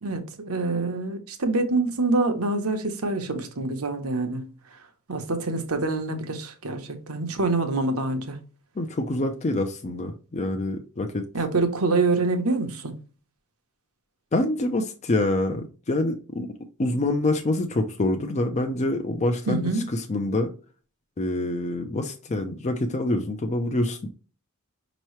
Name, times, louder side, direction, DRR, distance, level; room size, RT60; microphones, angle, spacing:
voice 1, 0.0-4.8 5.1-8.4 11.3-12.9 19.5-19.8, right 3 dB, 75° right, 0.9 m, -26 dB
voice 2, 8.8-11.3 14.3-16.5 16.8-20.5 21.2-24.1, left 2 dB, 30° left, 0.5 m, -26 dB
5.5 x 3.0 x 3.1 m
head